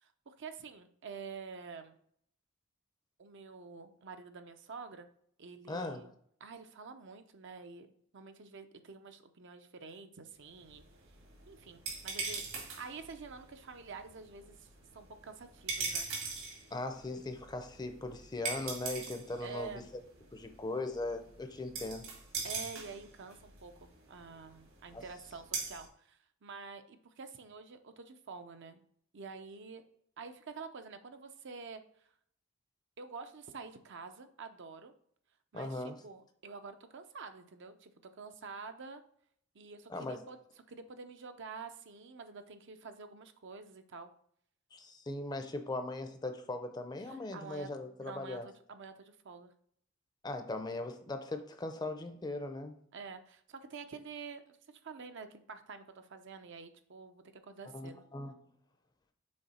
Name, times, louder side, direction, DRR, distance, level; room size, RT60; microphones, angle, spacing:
voice 1, 0.0-2.0 3.2-5.1 5.4-6.1 6.4-10.8 11.5-16.1 19.4-19.9 22.4-28.9 29.1-29.8 30.2-32.1 33.0-34.9 35.5-37.9 38.2-39.0 39.5-40.4 40.7-44.1 47.0-47.7 48.0-49.5 52.9-58.0, right 5 dB, 60° right, 8 dB, 0.6 m, -48 dB
voice 2, 5.7-6.1 16.7-19.8 20.3-22.0 24.9-25.0 35.5-36.0 39.9-40.2 44.7-48.5 50.2-52.8 57.7-58.3, left 2 dB, 20° left, 7 dB, 0.6 m, -39 dB
sound 1, 10.5-25.9, right 4 dB, 80° right, 2.3 m, -43 dB
6.5 x 3.9 x 4.2 m, 0.66 s
head